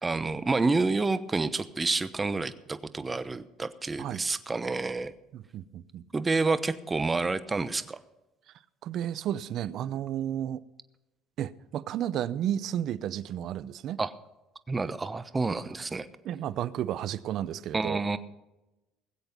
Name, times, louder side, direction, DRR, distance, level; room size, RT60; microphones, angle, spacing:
voice 1, 0.0-5.1 6.1-8.0 14.0-14.1 14.7-16.1 17.7-18.2, right 3 dB, 20° right, 1.0 m, -29 dB
voice 2, 5.3-6.0 8.8-10.6 11.4-14.0 16.2-18.0, right 11 dB, 60° right, 0.6 m, -32 dB
20.0 x 8.0 x 5.3 m
supercardioid pair, 80°, 0 cm